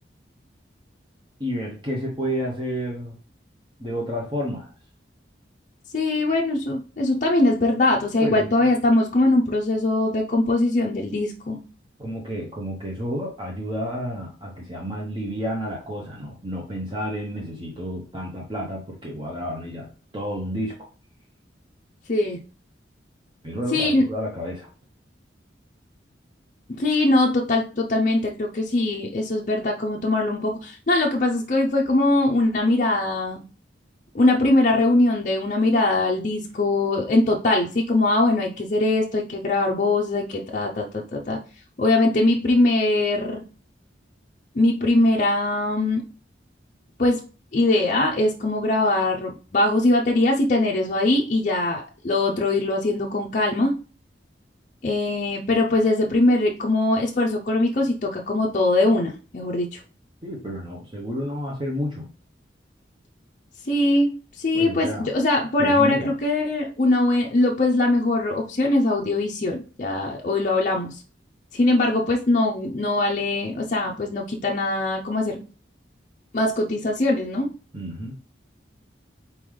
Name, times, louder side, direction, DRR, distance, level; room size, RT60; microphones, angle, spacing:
voice 1, 1.4-3.2 3.8-4.7 8.2-8.5 12.0-19.9 20.1-20.7 23.4-24.7 60.2-62.1 64.5-65.1 65.6-66.1 77.7-78.2, equal, 25° right, -2 dB, 0.9 m, -30 dB
voice 2, 5.9-11.6 22.1-22.4 23.7-24.1 26.7-33.4 34.1-41.4 41.8-43.4 44.5-46.0 47.0-47.2 47.5-53.7 54.8-59.8 63.6-71.0 71.5-75.4 76.3-77.5, left 2 dB, 45° left, -1 dB, 0.5 m, -21 dB
4.2 x 3.8 x 3.2 m, 0.37 s
head